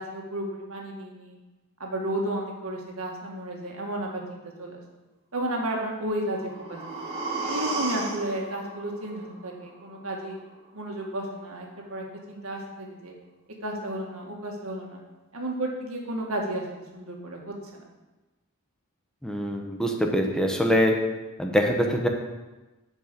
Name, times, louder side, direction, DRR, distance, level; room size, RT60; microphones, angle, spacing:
voice 1, 0.0-1.4 1.8-4.8 5.3-7.0 7.4-10.4 10.7-13.1 13.6-15.0 15.3-17.8, right 1 dB, 90° right, 0 dB, 2.0 m, -33 dB
sound 1, 6.1-10.1 10.5-10.6, right 3 dB, 30° right, 2.1 m, -34 dB
voice 2, 19.2-21.0 21.4-22.1, equal, 5° left, 2 dB, 1.0 m, -23 dB
11.5 x 5.5 x 5.3 m, 1.1 s
head